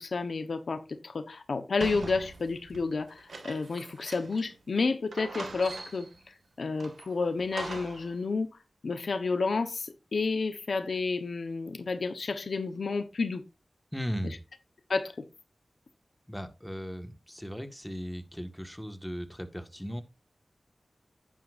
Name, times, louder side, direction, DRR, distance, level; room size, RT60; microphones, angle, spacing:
voice 1, 0.0-6.1 6.6-8.5 8.8-13.4 14.9-15.2, left 4 dB, 80° left, 1.1 m, -30 dB
sound 1, 1.8-4.5 4.8-4.9 5.1-6.2 6.8-8.1, right 3 dB, 85° right, 2.0 m, -42 dB
voice 2, 13.9-14.4 16.3-20.0, equal, 5° left, 1.6 m, -37 dB
10.0 x 10.0 x 2.6 m
cardioid pair, 50°, 0 cm